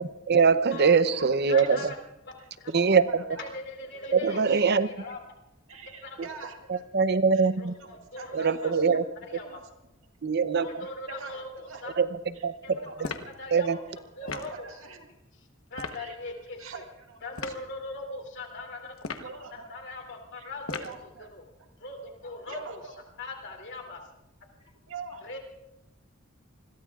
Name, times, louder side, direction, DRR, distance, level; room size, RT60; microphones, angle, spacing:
voice 1, 0.0-1.9 2.7-3.2 4.1-4.9 6.7-7.8 8.3-9.0 10.2-10.7 12.0-12.1 12.4-12.5 13.5-13.8, right 5 dB, 55° right, 12 dB, 0.7 m, -23 dB
voice 2, 0.8-1.9 2.4-2.8 3.2-3.4 4.4-4.8 5.7-6.8 7.3-7.5 7.8-8.8 9.3-9.6 10.7-10.8 11.1-11.8 12.4-12.5 12.7-12.9 13.2-13.3 14.2-15.1 15.9-16.2 16.6-17.2 19.2-19.7 20.4-21.3 22.5-23.0 24.9-25.3, right 4 dB, 80° right, 2 dB, 2.1 m, -44 dB
voice 3, 1.5-2.0 2.6-2.7 3.4-4.4 4.8-5.2 6.0-6.2 7.6-8.7 9.3-9.6 10.5-11.9 12.6-12.7 13.0-13.1 13.4-13.8 14.2-14.5 15.7-16.8 17.2-19.2 19.5-20.9 21.3-21.4 21.8-22.6 23.2-24.0 25.2-25.4, left 2 dB, 60° left, 0 dB, 3.0 m, -40 dB
sound 1, 13.0-13.4 14.3-14.6 15.7-16.0 17.3-17.6 19.0-19.4 20.7-21.0, left 4 dB, 90° left, 1.1 m, -36 dB
27.0 x 21.5 x 2.4 m, 0.90 s
head